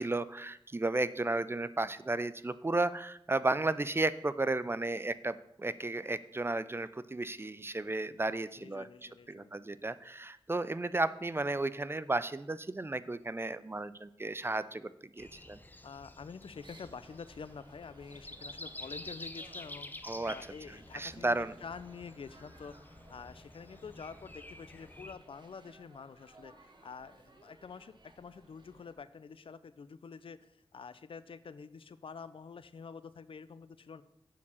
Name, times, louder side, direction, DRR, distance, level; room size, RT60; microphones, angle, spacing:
voice 1, 0.0-8.8 9.3-14.9 15.2-15.6 20.0-20.3 20.9-21.5, right 2 dB, 25° right, 15 dB, 0.4 m, -33 dB
voice 2, 8.6-9.6 15.8-34.0, left 5 dB, 70° left, 15 dB, 0.4 m, -48 dB
Breathing, 15.2-25.1, left 1 dB, 20° left, 0.6 m, -49 dB
sound 1, 16.6-28.9, right 2 dB, 55° right, 1.4 m, -60 dB
7.3 x 4.6 x 6.9 m, 0.78 s
wide cardioid pair, 65°, 9 cm